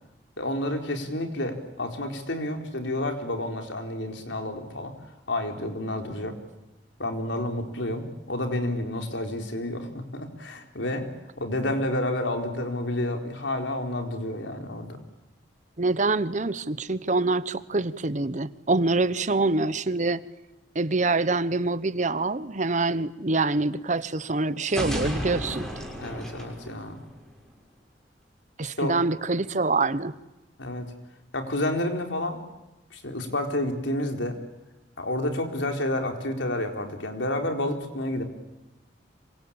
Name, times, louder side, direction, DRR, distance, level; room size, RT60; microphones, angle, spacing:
voice 1, 0.4-4.9 5.3-6.3 7.0-9.9 10.1-11.0 11.4-15.0 26.0-27.0 28.6-29.0 30.6-30.9 31.3-32.4 32.9-34.4 35.0-38.2, left 1 dB, 85° left, 4 dB, 4.3 m, -30 dB
voice 2, 15.8-20.2 20.7-25.7 28.6-30.1, right 3 dB, 40° right, 15 dB, 1.0 m, -25 dB
sound 1, 24.6-27.5, equal, 5° left, 6.2 m, -33 dB
26.5 x 25.0 x 8.8 m, 1.0 s
head